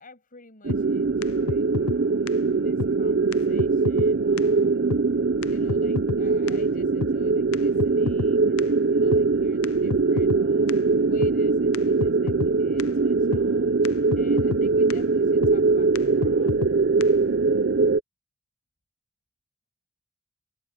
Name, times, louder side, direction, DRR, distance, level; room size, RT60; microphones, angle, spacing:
voice 1, 0.0-4.8 5.4-13.7 14.1-16.8, left 3 dB, 40° left, 7.2 m, -51 dB
sound 1, 0.6-18.0, right 4 dB, 50° right, 0.6 m, -22 dB
sound 2, 0.7-0.8 1.2-1.3 1.5-2.0 2.3-2.4 2.8-2.9 3.3-3.4 3.6-4.1 4.4-4.5 4.9-5.0 5.4-5.5 5.7-6.2 6.5-6.6 7.0-7.1 7.5-8.3 8.6-8.7 9.1-9.2 9.6-9.7 9.9-10.4 10.7-10.8 11.2-11.3 11.7-11.8 12.0-12.5 12.8-12.9 13.3-13.4 13.9-14.0 14.1-14.6 14.9-15.0 15.4-15.6 16.0-16.1 16.2-16.7 17.0-17.1, left 5 dB, 70° left, 0.5 m, -29 dB
head